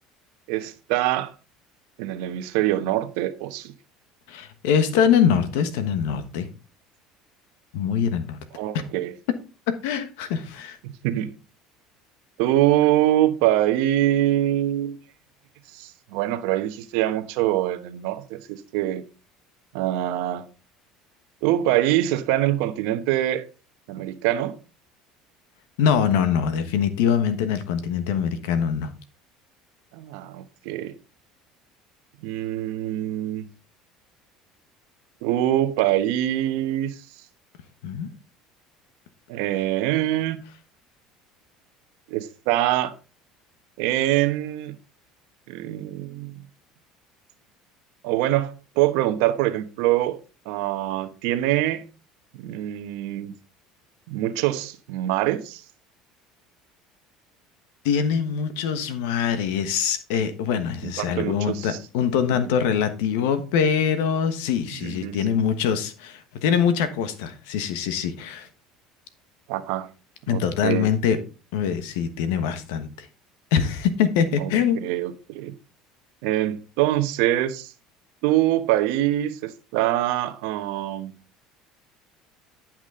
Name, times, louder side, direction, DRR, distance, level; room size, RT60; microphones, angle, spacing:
voice 1, 0.5-1.3 2.0-3.7 8.5-9.1 11.0-11.3 12.4-15.0 15.7-19.0 19.7-20.5 21.4-23.4 23.9-24.6 29.9-30.9 32.2-33.4 35.2-36.9 39.3-40.4 42.1-42.9 43.8-44.8 45.5-46.3 48.0-50.2 50.4-51.9 52.3-53.3 54.1-55.6 60.8-61.8 64.8-65.2 69.5-69.9 70.3-70.9 74.4-74.5 74.8-75.5 76.2-77.7 78.2-81.1, right 14 dB, 80° right, 1.0 m, -24 dB
voice 2, 4.3-6.5 7.7-8.4 9.7-10.8 25.8-28.9 37.8-38.1 57.8-68.5 70.3-71.2 71.5-73.1 73.5-74.8, left 7 dB, 85° left, 1.2 m, -23 dB
10.0 x 6.0 x 3.7 m
supercardioid pair, 105°, 0 cm